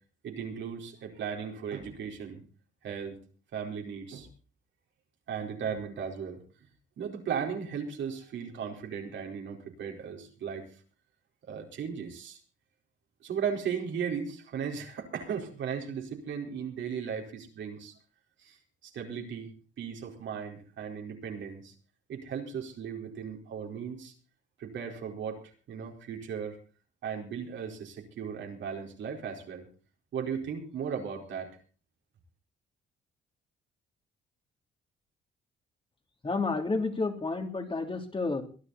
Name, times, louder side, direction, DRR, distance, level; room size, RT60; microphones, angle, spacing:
voice 1, 0.2-2.4 2.8-3.2 3.5-4.3 5.3-6.4 7.0-10.6 11.5-12.4 13.2-17.9 18.4-18.6 18.8-21.7 22.1-24.1 24.6-25.4 25.7-26.6 27.0-29.7 30.1-31.5, right 7 dB, 70° right, 2 dB, 4.5 m, -36 dB
voice 2, 36.2-38.4, left 3 dB, 25° left, 4 dB, 3.1 m, -30 dB
22.5 x 11.0 x 4.1 m, 0.38 s
cardioid pair, 90°, 20 cm